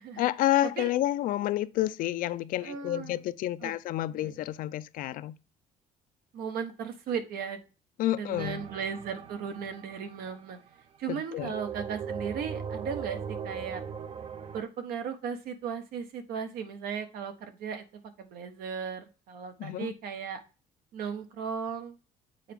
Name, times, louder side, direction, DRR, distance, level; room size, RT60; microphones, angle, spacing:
voice 1, 0.2-5.4 8.0-8.6 11.1-11.5 19.6-19.9, left 14 dB, 65° left, 0.4 m, -29 dB
voice 2, 2.6-3.2 3.6-3.7 4.1-4.4 6.3-7.6 8.1-10.6 11.0-13.8 14.5-17.8 18.2-20.4 20.9-22.0, right 6 dB, 80° right, 1.2 m, -36 dB
sound 1, 8.3-10.7 11.4-14.6, right 7 dB, 40° right, 0.5 m, -39 dB
7.6 x 4.5 x 3.5 m
cardioid pair, 155°, 15 cm